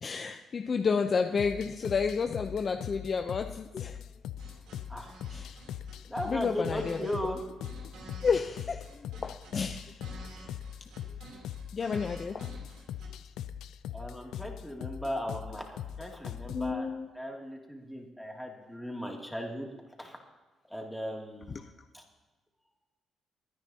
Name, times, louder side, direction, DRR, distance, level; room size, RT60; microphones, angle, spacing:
voice 1, 0.0-4.0 5.3-5.6 6.3-7.0 8.2-8.8 9.2-10.0 11.7-12.5 16.5-17.1 21.5-21.7, left 5 dB, 45° left, 5 dB, 0.7 m, -31 dB
sound 1, 1.4-16.7, left 10 dB, 80° left, 0.5 m, -41 dB
sound 2, 4.4-13.1, right 3 dB, 90° right, 3.3 m, -50 dB
voice 2, 6.1-7.4 13.9-16.9 17.1-19.7 20.0-20.2 20.7-21.6 21.9-22.0, equal, ahead, 0 dB, 2.7 m, -37 dB
23.0 x 9.9 x 2.9 m, 1.2 s
cardioid pair, 90°, 0 cm